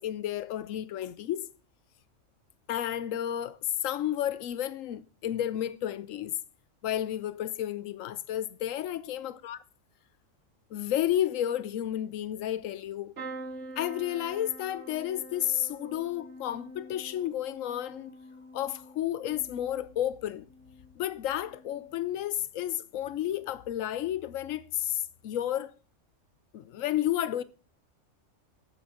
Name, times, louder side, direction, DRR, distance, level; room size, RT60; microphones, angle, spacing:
voice 1, 0.0-1.5 2.7-6.4 6.8-9.6 10.7-13.1 13.8-18.1 18.5-20.5 21.0-25.7 26.5-27.4, left 11 dB, 90° left, 1.1 m, -32 dB
sound 1, 13.2-21.0 21.4-22.0 23.2-23.4 23.7-23.8, right 2 dB, 65° right, 1.4 m, -46 dB
8.0 x 7.7 x 5.7 m
omnidirectional pair, 1.3 m